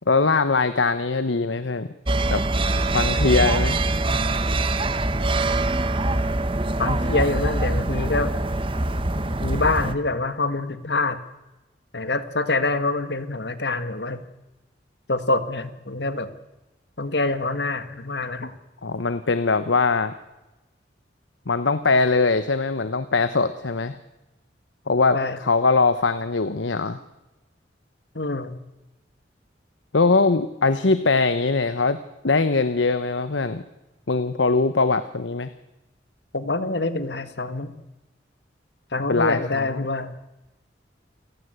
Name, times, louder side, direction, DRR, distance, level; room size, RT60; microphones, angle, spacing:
voice 1, 0.1-1.9 2.3-2.4 2.9-3.8 18.8-20.1 21.5-24.0 24.9-27.0 29.9-32.0 32.2-33.6 34.1-35.5 39.1-39.9, left 3 dB, 90° left, 12 dB, 1.1 m, -21 dB
sound 1, 2.1-9.9, right 2 dB, 30° right, 1.3 m, -23 dB
voice 2, 6.8-8.4 9.4-11.2 11.9-14.2 15.1-16.3 17.0-18.5 25.1-25.4 28.1-28.6 36.3-37.7 38.9-40.2, left 3 dB, 65° left, 11 dB, 1.8 m, -25 dB
28.5 x 17.5 x 8.2 m, 1.0 s
head